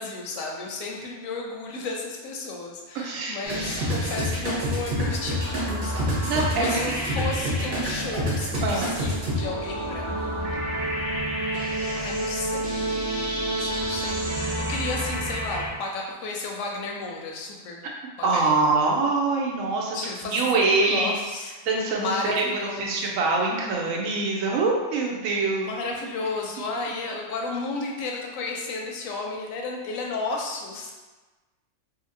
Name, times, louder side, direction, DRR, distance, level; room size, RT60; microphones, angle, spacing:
voice 1, 0.0-10.5 11.9-13.0 13.5-14.3 14.7-17.8 18.2-18.8 19.9-21.5 21.9-23.2 25.5-30.9, left 3 dB, 90° left, 0 dB, 1.0 m, -33 dB
voice 2, 2.9-3.4 6.2-6.8 8.6-8.9 18.2-21.1 21.6-25.7, right 3 dB, 90° right, -1 dB, 1.0 m, -24 dB
sound 1, 3.4-15.7, equal, 50° right, 0.9 m, -28 dB
2.7 x 2.7 x 2.5 m, 1.2 s
omnidirectional pair, 1.4 m